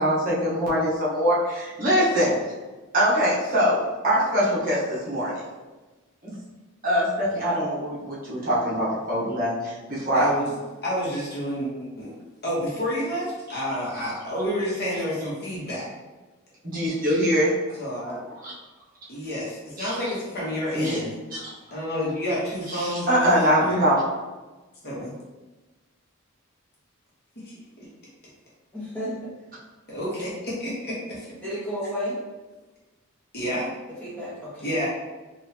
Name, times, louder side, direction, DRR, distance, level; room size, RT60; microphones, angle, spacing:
voice 1, 0.0-2.3 2.9-5.3 6.2-6.3 6.8-10.3 16.6-17.5 18.4-18.5 19.8-19.9 20.7-21.0 21.3-21.4 22.7-24.0, equal, 40° right, -8 dB, 1.2 m, -23 dB
voice 2, 10.1-10.5 10.8-12.1 12.4-15.9 17.8-18.2 19.1-21.2 21.7-23.9 24.8-25.1 27.4-27.5 29.9-31.3 33.3-33.7 34.6-34.9, equal, 50° left, -6 dB, 1.2 m, -29 dB
voice 3, 28.7-29.3 31.4-32.2 34.0-34.7, equal, 5° left, -8 dB, 1.3 m, -32 dB
4.1 x 2.6 x 2.8 m, 1.2 s
head